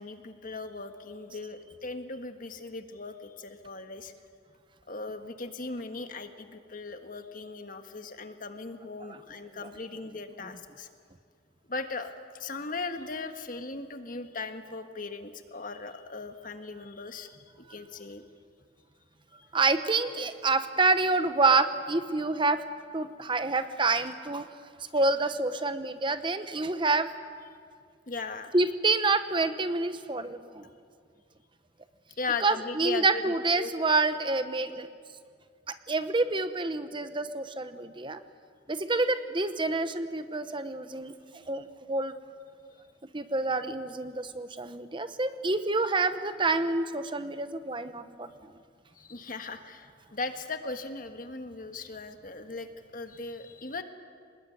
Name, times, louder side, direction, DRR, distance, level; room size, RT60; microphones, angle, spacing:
voice 1, 0.0-4.1 4.9-10.9 11.7-17.3 17.7-18.2 28.1-28.5 32.2-33.7 48.9-53.8, left 3 dB, 45° left, 7 dB, 1.6 m, -38 dB
voice 2, 19.5-22.6 22.9-24.5 24.9-27.1 28.5-30.6 32.4-34.9 35.7-38.2 38.7-41.1 41.5-42.1 43.1-48.3, right 3 dB, 25° right, 10 dB, 0.9 m, -27 dB
25.0 x 20.0 x 9.4 m, 2.2 s
head